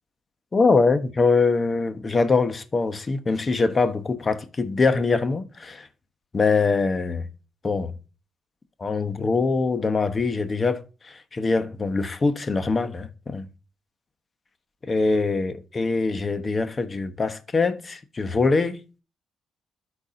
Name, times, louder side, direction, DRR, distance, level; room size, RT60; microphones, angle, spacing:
voice 1, 0.5-5.9 6.3-7.2 7.6-7.9 8.8-10.8 11.3-13.4 14.9-18.8, left 4 dB, 30° left, 1.1 m, -23 dB
13.0 x 4.6 x 2.6 m
cardioid pair, 90°, 0 cm